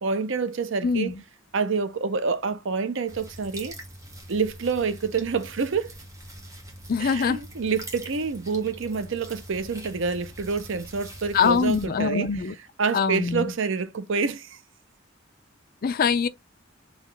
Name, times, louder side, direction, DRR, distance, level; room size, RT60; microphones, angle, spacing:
voice 1, 0.0-1.1 1.5-3.7 4.3-5.9 7.0-12.3 12.8-14.6, right 5 dB, 70° right, 0.6 m, -27 dB
voice 2, 0.8-1.2 6.9-7.4 11.3-12.5 12.9-13.5 15.8-16.3, left 6 dB, 50° left, 0.4 m, -23 dB
sound 1, 3.1-11.9, right 1 dB, 15° right, 1.2 m, -43 dB
3.9 x 3.0 x 3.3 m
head